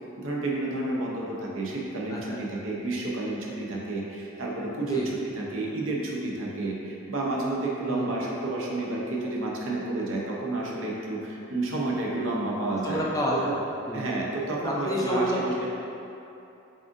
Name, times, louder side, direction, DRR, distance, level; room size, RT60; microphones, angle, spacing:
voice 1, 0.2-13.0 13.5-13.6 13.9-15.7, right 2 dB, 70° right, -3 dB, 0.7 m, -30 dB
voice 2, 2.1-2.4 4.8-5.1 7.9-8.1 12.8-13.5 13.9-14.1 14.6-15.4, equal, 15° left, -4 dB, 0.4 m, -29 dB
7.3 x 2.5 x 2.6 m, 2.8 s
head